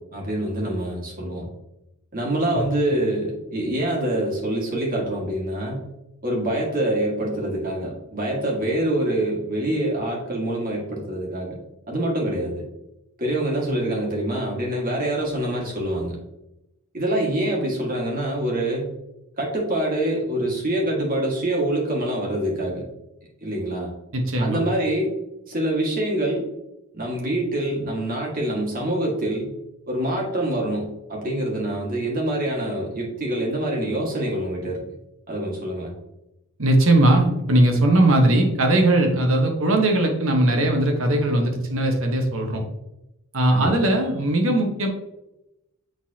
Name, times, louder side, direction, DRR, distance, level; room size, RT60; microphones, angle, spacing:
voice 1, 0.1-1.5 2.1-5.9 6.2-11.6 11.9-12.7 13.2-16.2 16.9-18.9 19.4-22.8 23.4-23.9 24.4-25.1 25.5-26.5 26.9-29.5 29.9-34.8 35.3-35.9 43.5-43.8, right 1 dB, 40° right, -2 dB, 1.9 m, -25 dB
voice 2, 24.1-24.6 36.6-42.6 43.3-44.9, right 1 dB, 60° right, 3 dB, 1.2 m, -19 dB
8.8 x 4.0 x 2.8 m, 0.91 s
head